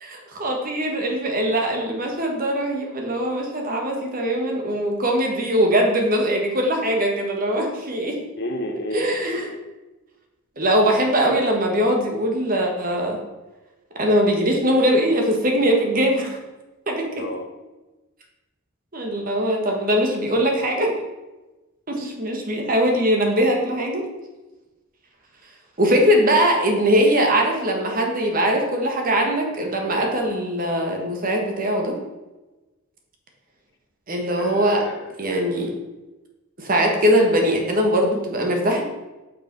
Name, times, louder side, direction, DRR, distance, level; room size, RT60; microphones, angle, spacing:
voice 1, 0.0-8.2 8.9-9.5 10.6-13.2 14.0-16.4 16.9-17.0 18.9-20.9 21.9-24.0 25.8-32.0 34.1-34.8 35.2-35.7 36.6-38.8, equal, 40° right, 1 dB, 1.4 m, -21 dB
voice 2, 8.4-9.6 17.2-17.5 34.4-35.1, left 1 dB, 50° left, 3 dB, 1.0 m, -32 dB
6.8 x 5.8 x 5.3 m, 1.1 s
head